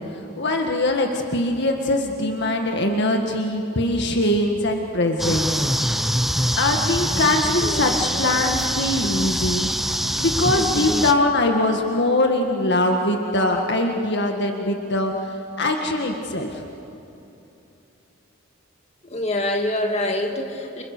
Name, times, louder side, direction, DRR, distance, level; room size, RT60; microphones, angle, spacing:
voice 1, 0.0-5.7 6.6-9.7 10.2-16.6, left 2 dB, 55° left, 3 dB, 1.8 m, -22 dB
sound 1, 5.2-11.1, equal, ahead, 0.8 m, -24 dB
voice 2, 19.0-20.8, left 1 dB, 30° left, 2 dB, 2.5 m, -25 dB
29.5 x 29.5 x 6.8 m, 2.9 s
head